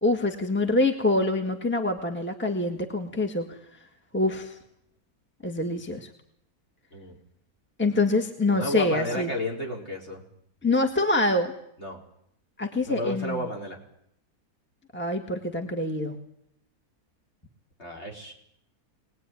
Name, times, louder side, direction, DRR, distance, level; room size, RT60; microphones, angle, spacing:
voice 1, 0.0-3.6 4.1-4.6 5.4-6.1 7.8-9.3 10.6-11.5 12.6-13.4 14.9-16.2, left 2 dB, 5° left, 4 dB, 1.8 m, -25 dB
voice 2, 8.5-10.2 11.8-12.0 12.9-13.8 17.8-18.3, left 1 dB, 45° left, 0 dB, 4.7 m, -32 dB
25.0 x 19.5 x 9.8 m, 0.76 s
omnidirectional pair, 1.6 m